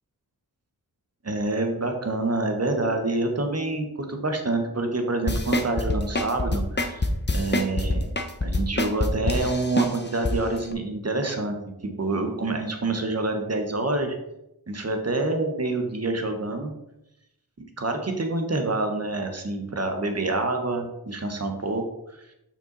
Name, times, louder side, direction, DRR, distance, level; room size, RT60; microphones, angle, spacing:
voice 1, 1.2-8.1 8.4-11.6 12.0-14.2 14.7-16.7 17.8-21.8 22.1-22.2, right 2 dB, 40° right, 5 dB, 1.3 m, -27 dB
sound 1, 5.3-10.3 10.7-10.8, left 2 dB, 30° left, 0.9 m, -25 dB
6.9 x 5.9 x 4.1 m, 0.86 s
wide cardioid pair, 75°, 37 cm